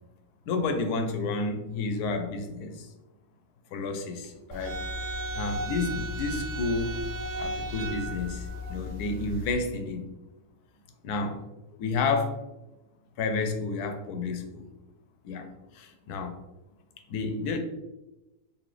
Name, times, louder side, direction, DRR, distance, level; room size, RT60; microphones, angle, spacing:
voice 1, 0.5-2.9 3.7-4.8 5.3-7.0 7.4-10.0 11.0-11.4 11.8-12.4 13.2-14.6 15.2-15.5 15.7-16.4 17.1-17.6, left 3 dB, 80° left, 6 dB, 1.1 m, -30 dB
sound 1, 4.5-9.5, equal, 70° right, 0.9 m, -35 dB
3.9 x 3.0 x 3.2 m, 1.0 s
omnidirectional pair, 1.6 m